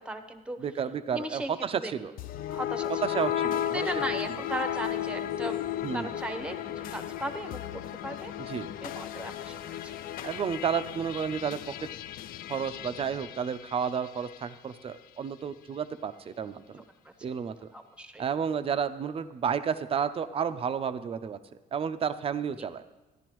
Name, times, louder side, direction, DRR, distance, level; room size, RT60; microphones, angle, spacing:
voice 1, 0.0-0.6 1.1-1.9 2.5-3.0 3.5-5.6 5.9-8.3 8.8-10.0 16.7-17.3 17.7-18.2 22.6-22.7, right 1 dB, 5° right, 8 dB, 0.8 m, -37 dB
voice 2, 0.6-2.1 3.0-4.0 5.8-6.1 8.5-8.7 10.2-11.7 12.5-16.8 17.2-17.7 18.2-21.4 21.7-22.8, right 7 dB, 35° right, 11 dB, 0.5 m, -31 dB
sound 1, 2.2-14.5, left 11 dB, 60° left, 0.4 m, -35 dB
14.0 x 11.0 x 3.0 m, 1.1 s
cardioid pair, 110°, 17 cm